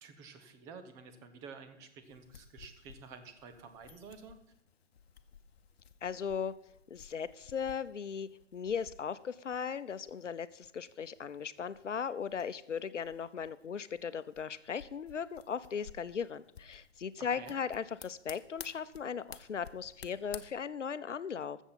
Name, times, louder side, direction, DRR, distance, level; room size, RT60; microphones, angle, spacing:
voice 1, 0.0-4.4 17.3-17.5, right 5 dB, 10° right, 8 dB, 0.5 m, -51 dB
sound 1, 2.0-20.4, left 7 dB, 60° left, 1.0 m, -55 dB
voice 2, 6.0-6.5 6.9-21.6, left 7 dB, 85° left, 15 dB, 0.7 m, -38 dB
14.0 x 7.3 x 5.7 m, 0.76 s
figure-of-eight pair, 130°, 36 cm